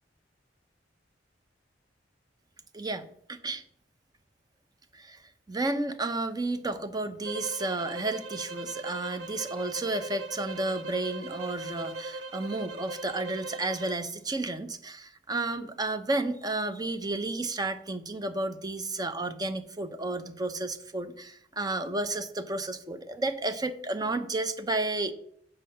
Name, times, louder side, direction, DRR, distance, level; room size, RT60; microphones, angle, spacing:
voice 1, 2.7-3.6 4.9-5.2 5.5-25.1, right 2 dB, 20° right, 9 dB, 0.7 m, -32 dB
sound 1, 7.2-14.0, right 2 dB, 80° right, 0.9 m, -39 dB
7.5 x 5.5 x 6.7 m, 0.66 s
head